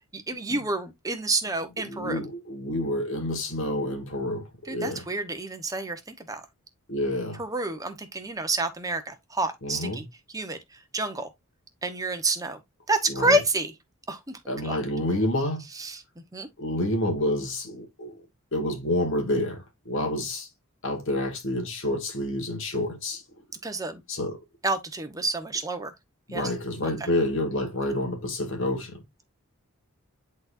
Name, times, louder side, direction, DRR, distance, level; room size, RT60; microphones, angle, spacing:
voice 1, 0.1-2.2 4.7-6.0 6.3-6.4 7.4-10.1 10.3-10.6 10.9-11.3 11.8-12.6 12.9-13.7 14.1-14.4 14.6-14.8 15.8-16.0 16.3-16.5 23.6-24.0 24.6-25.9 26.3-26.4, right 2 dB, 15° right, 1.1 m, -28 dB
voice 2, 1.8-5.0 6.9-7.4 9.6-10.0 13.1-13.4 14.5-15.6 16.6-18.1 18.5-20.5 20.8-23.2 24.1-24.4 26.3-29.0, left 1 dB, 55° left, 1.9 m, -28 dB
10.5 x 4.2 x 2.6 m
head